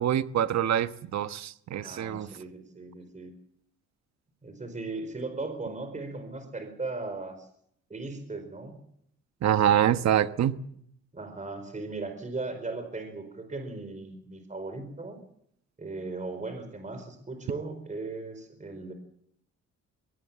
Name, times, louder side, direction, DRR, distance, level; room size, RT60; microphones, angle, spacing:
voice 1, 0.0-2.3 9.4-10.5, right 10 dB, 60° right, 11 dB, 1.3 m, -25 dB
voice 2, 1.8-3.3 4.4-7.5 7.9-8.8 11.1-15.2 15.8-18.9, right 3 dB, 25° right, 7 dB, 4.6 m, -37 dB
23.0 x 18.5 x 7.4 m, 0.70 s
cardioid pair, 90°, 30 cm